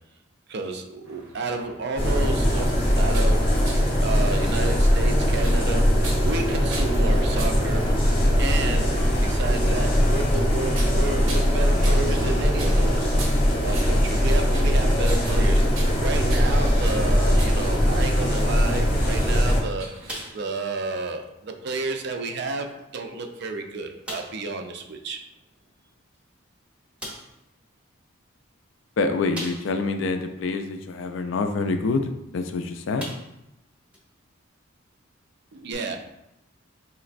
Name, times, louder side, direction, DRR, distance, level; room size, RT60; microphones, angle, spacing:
voice 1, 0.5-7.9 8.4-13.1 13.6-19.9 20.3-25.2 35.5-36.0, right 3 dB, 55° right, 5 dB, 0.4 m, -31 dB
sound 1, 1.1-20.3, right 2 dB, 75° right, 0.8 m, -42 dB
sound 2, 2.0-19.6, equal, 30° left, 0.7 m, -21 dB
sound 3, 20.1-20.8 21.1-21.2 21.8-21.9 22.8-22.9 23.3-23.4 24.0-24.5 26.1-26.2 27.0-27.4 29.3-29.9 30.4-30.5 32.3-32.5 33.0-33.5 33.9-34.0 35.7-35.8, equal, 5° right, 0.7 m, -38 dB
voice 2, 29.0-33.0, left 3 dB, 70° left, 7 dB, 0.4 m, -26 dB
4.3 x 3.0 x 2.5 m, 0.87 s
head